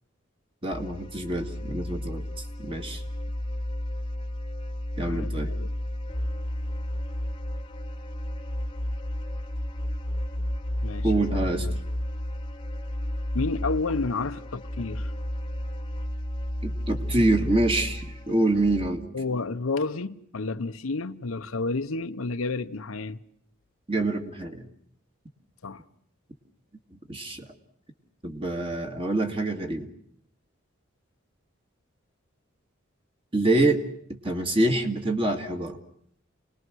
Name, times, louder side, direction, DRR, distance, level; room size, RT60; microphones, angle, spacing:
voice 1, 0.6-2.3 2.6-3.0 5.0-5.5 11.0-11.7 16.6-19.0 23.9-24.6 27.1-27.5 28.2-29.9 33.3-33.8 34.1-35.8, right 2 dB, 25° right, 2.0 m, -26 dB
sound 1, 0.7-18.9, left 1 dB, 20° left, 1.3 m, -32 dB
voice 2, 5.0-5.7 10.8-11.8 13.3-15.1 19.1-23.2 25.6-25.8, left 3 dB, 85° left, 0.9 m, -31 dB
29.5 x 20.0 x 6.3 m
head